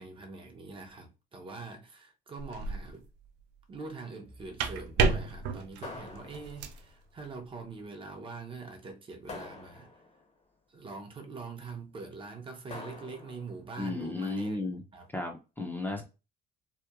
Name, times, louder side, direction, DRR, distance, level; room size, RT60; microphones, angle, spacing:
voice 1, 0.0-3.0 3.7-9.9 10.7-14.6 14.9-15.1 15.9-16.0, right 4 dB, 30° right, 0.6 m, -44 dB
sound 1, 2.4-2.9 4.3-6.8, right 4 dB, 85° right, 0.4 m, -31 dB
sound 2, 5.8-6.9 9.3-10.3 12.7-13.6, left 3 dB, 40° left, 0.8 m, -45 dB
voice 2, 13.8-14.8 15.1-16.0, left 2 dB, 10° left, 0.5 m, -34 dB
2.8 x 2.1 x 2.3 m
cardioid pair, 110°, 17 cm